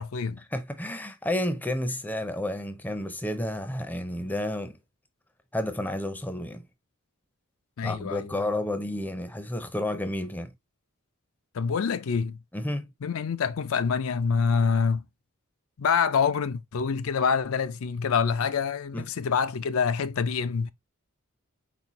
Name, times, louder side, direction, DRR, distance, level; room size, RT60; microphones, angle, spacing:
voice 1, 0.0-0.4 7.8-8.5 11.5-12.4 13.0-15.0 15.8-20.7, left 6 dB, 70° left, 0.4 m, -26 dB
voice 2, 0.5-4.8 5.5-6.7 7.8-10.5 12.5-12.9 18.9-19.0, left 1 dB, 10° left, 0.5 m, -31 dB
4.3 x 4.1 x 2.9 m
head